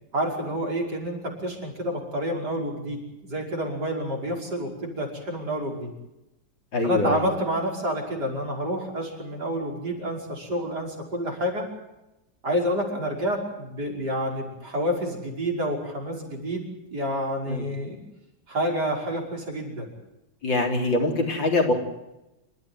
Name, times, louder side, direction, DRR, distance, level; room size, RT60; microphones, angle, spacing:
voice 1, 0.1-5.9 6.8-11.7 12.4-16.6 16.9-18.0 18.5-19.9, equal, 60° right, 0 dB, 6.0 m, -29 dB
voice 2, 6.7-7.3 17.5-17.6 20.4-21.7, left 2 dB, 90° left, 2 dB, 4.5 m, -24 dB
27.0 x 14.5 x 9.6 m, 0.95 s
omnidirectional pair, 2.0 m